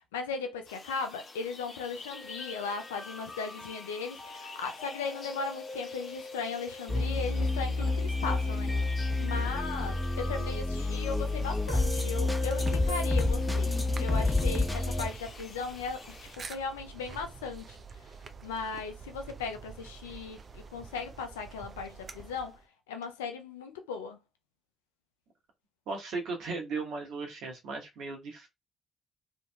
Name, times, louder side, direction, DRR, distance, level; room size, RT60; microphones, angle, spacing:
voice 1, 0.1-8.7 9.2-17.8 18.4-22.6 22.9-24.2, left 4 dB, 85° left, 0.4 m, -37 dB
sound 1, 0.6-16.4, left 4 dB, 50° left, 0.8 m, -49 dB
sound 2, 2.1-15.1, left 2 dB, 10° left, 1.0 m, -31 dB
sound 3, 11.2-22.6, right 5 dB, 45° right, 0.4 m, -47 dB
voice 2, 25.9-28.5, right 3 dB, 65° right, 1.0 m, -36 dB
2.7 x 2.5 x 2.2 m
hypercardioid pair, 45°, 0 cm